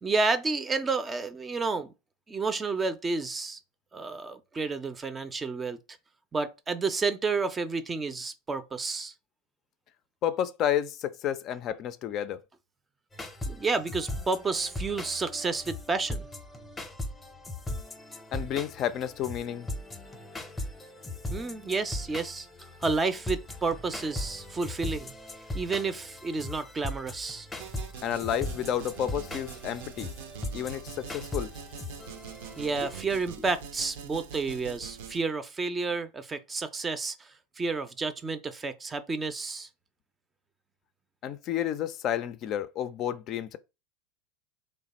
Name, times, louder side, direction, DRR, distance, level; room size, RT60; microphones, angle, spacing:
voice 1, 0.0-1.9 2.3-3.6 3.9-5.8 6.3-9.1 13.5-16.3 21.3-22.5 22.8-25.1 25.5-27.5 32.6-39.7, right 4 dB, 20° right, 0.5 m, -30 dB
voice 2, 10.2-12.4 18.3-19.7 28.0-30.1 30.5-31.5 41.2-43.6, left 10 dB, 45° left, 0.4 m, -31 dB
sound 1, 13.1-33.0, left 1 dB, 10° left, 0.7 m, -39 dB
sound 2, 27.6-35.2, right 7 dB, 70° right, 0.6 m, -44 dB
3.1 x 2.2 x 4.1 m
hypercardioid pair, 90°, 0 cm